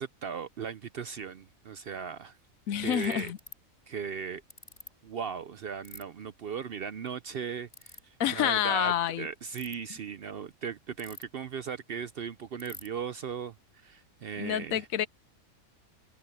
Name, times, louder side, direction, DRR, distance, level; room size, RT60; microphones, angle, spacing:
voice 1, 0.0-2.4 2.8-3.3 3.9-4.4 5.0-14.9, right 7 dB, 55° right, 0.7 m, -37 dB
voice 2, 2.7-3.4 8.2-9.3 14.4-15.1, left 10 dB, 80° left, 1.1 m, -28 dB
Ratchet pawl, 2.9-3.5 4.5-4.9 5.8-6.0 7.7-8.0 9.4-9.8 11.0-11.5 11.8-11.9 12.1-12.2 12.6-12.9, left 1 dB, 30° left, 4.6 m, -46 dB
omnidirectional pair, 1.4 m